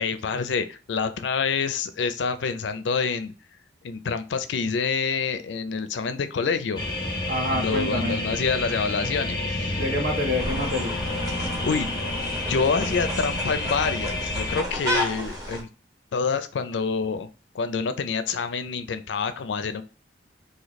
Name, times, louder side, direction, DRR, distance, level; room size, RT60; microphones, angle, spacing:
voice 1, 0.0-3.3 3.8-6.8 7.5-9.8 11.4-11.9 12.5-15.7 16.1-17.3 17.5-19.8, left 5 dB, 90° left, 0.4 m, -27 dB
sound 1, 6.8-14.6, left 2 dB, 25° left, 0.7 m, -29 dB
voice 2, 7.3-8.2 9.7-11.0, left 1 dB, 75° right, 1.3 m, -27 dB
sound 2, 10.4-15.6, equal, 20° right, 0.9 m, -32 dB
3.1 x 2.6 x 4.1 m
head